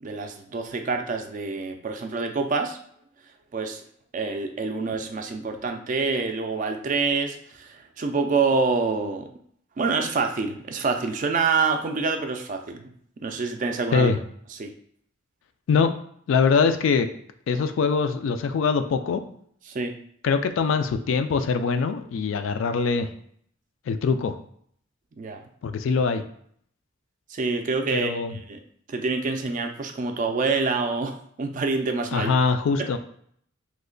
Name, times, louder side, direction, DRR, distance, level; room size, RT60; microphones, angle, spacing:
voice 1, 0.0-2.8 3.5-3.8 4.1-9.3 9.8-12.9 13.2-14.1 14.6-14.7 19.7-20.0 25.2-25.4 27.3-28.6 28.9-32.3, right 4 dB, 40° right, 5 dB, 0.3 m, -26 dB
voice 2, 16.3-17.1 17.5-19.2 20.2-23.1 23.9-24.3 25.6-26.2 27.9-28.4 32.1-33.0, left 5 dB, 65° left, 9 dB, 0.3 m, -23 dB
3.1 x 2.1 x 3.8 m, 0.63 s
head